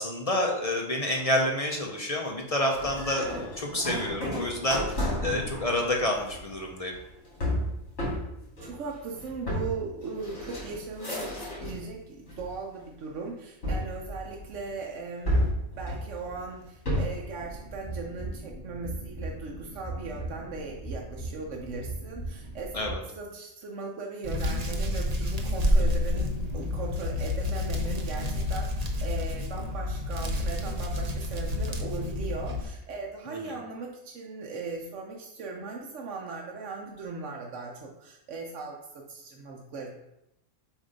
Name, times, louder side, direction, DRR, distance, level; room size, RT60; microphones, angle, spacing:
voice 1, 0.0-3.3 3.6-6.9 22.7-23.0 33.3-33.6, left 1 dB, 35° left, 0 dB, 0.7 m, -28 dB
sound 1, 2.7-11.9 12.3-12.9 13.6-14.7 15.3-17.3, equal, 65° left, 2.8 m, -32 dB
voice 2, 8.6-39.9, right 3 dB, 70° right, -1 dB, 1.1 m, -38 dB
sound 2, 17.4-22.9, right 2 dB, 20° left, 1.3 m, -39 dB
Hands, 24.2-32.6, left 1 dB, 35° right, 0.7 m, -29 dB
7.3 x 2.7 x 5.1 m, 0.85 s
omnidirectional pair, 1.4 m